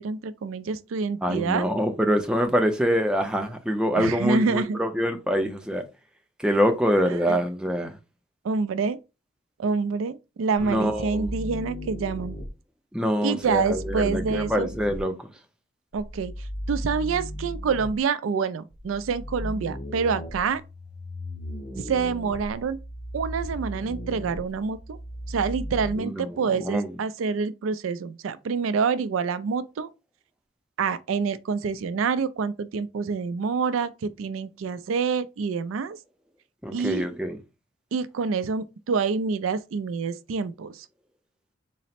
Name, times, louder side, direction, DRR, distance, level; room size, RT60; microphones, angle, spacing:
voice 1, 0.0-1.7 4.0-4.8 7.1-7.4 7.8-7.9 8.4-9.0 9.6-12.4 13.2-14.7 15.9-20.6 21.8-22.8 23.1-25.0 25.3-29.9 30.8-36.0 36.7-37.1 37.9-40.9, right 5 dB, 90° right, 0.4 m, -27 dB
voice 2, 1.2-5.8 6.4-8.0 10.6-11.3 12.9-15.3 26.0-26.9 36.6-37.4, equal, 5° right, 0.5 m, -25 dB
sound 1, 10.6-12.5 13.4-15.0 15.9-18.0 18.7-25.9, equal, 30° left, 0.9 m, -36 dB
4.0 x 2.0 x 4.1 m
head